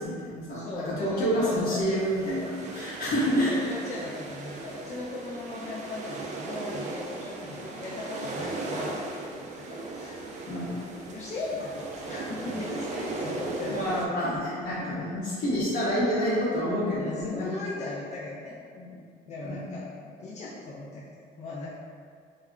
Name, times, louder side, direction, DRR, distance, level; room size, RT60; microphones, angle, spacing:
voice 1, 0.0-3.5 10.5-10.9 13.7-17.5 19.4-19.6, equal, 65° left, -8 dB, 0.8 m, -28 dB
voice 2, 0.5-1.9 3.4-10.5 11.1-14.5 14.8-14.9 15.6-15.7 17.0-21.7, left 2 dB, 45° left, -6 dB, 0.4 m, -38 dB
sound 1, 2.0-14.1, right 3 dB, 45° right, 0.4 m, -37 dB
2.3 x 2.0 x 3.6 m, 2.2 s
cardioid pair, 110°, 17 cm